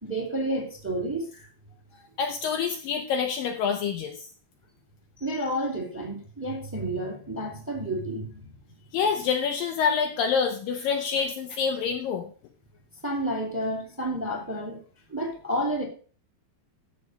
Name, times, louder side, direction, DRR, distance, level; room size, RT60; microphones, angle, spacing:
voice 1, 0.0-1.5 5.2-8.5 13.0-14.8 15.1-15.8, right 1 dB, 5° right, 2 dB, 2.2 m, -30 dB
voice 2, 2.2-4.3 8.9-12.3, left 6 dB, 75° left, 5 dB, 2.3 m, -27 dB
13.5 x 4.7 x 6.3 m, 0.41 s
omnidirectional pair, 4.6 m